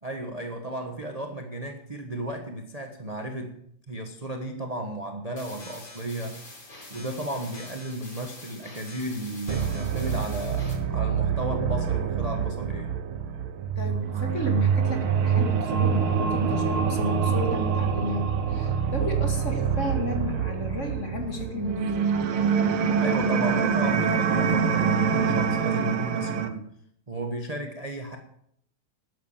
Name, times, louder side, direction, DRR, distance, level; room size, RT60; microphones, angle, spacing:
voice 1, 0.0-6.4 6.9-12.9 23.0-26.6 27.1-28.2, right 1 dB, 20° right, 4 dB, 1.1 m, -34 dB
sound 1, 5.4-10.7, left 2 dB, 85° left, 5.2 m, -45 dB
sound 2, 9.5-26.5, right 6 dB, 75° right, 1.9 m, -25 dB
voice 2, 13.8-22.1, left 2 dB, 35° left, 3 dB, 2.4 m, -33 dB
13.0 x 9.5 x 7.2 m, 0.69 s
omnidirectional pair, 2.4 m